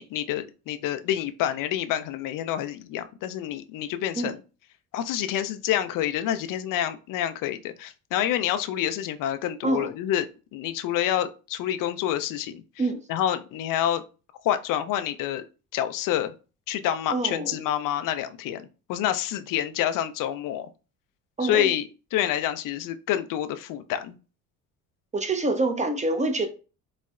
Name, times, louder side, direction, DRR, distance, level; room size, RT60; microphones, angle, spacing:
voice 1, 0.0-4.4 4.9-10.3 10.5-12.6 13.1-14.0 14.4-15.4 15.7-16.3 16.7-20.7 21.4-24.2, left 11 dB, 55° left, 0.5 m, -28 dB
voice 2, 17.1-17.5 21.4-21.7 25.1-26.5, right 2 dB, 20° right, 0.6 m, -26 dB
4.0 x 2.0 x 2.3 m
hypercardioid pair, 65°, 41 cm